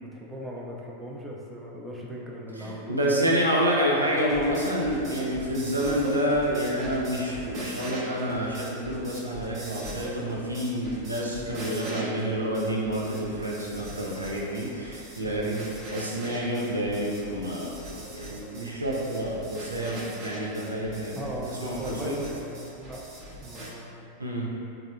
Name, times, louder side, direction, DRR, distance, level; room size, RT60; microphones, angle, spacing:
voice 1, 0.0-3.0 15.2-15.5 21.2-23.0 23.3-24.0, equal, 5° right, -4 dB, 0.5 m, -38 dB
voice 2, 2.6-21.2 21.6-22.2 24.2-24.5, equal, 80° right, -4 dB, 0.5 m, -28 dB
sound 1, 4.0-23.7, right 1 dB, 30° right, 0.8 m, -41 dB
3.4 x 2.4 x 3.4 m, 2.7 s
figure-of-eight pair, 90°, 0 cm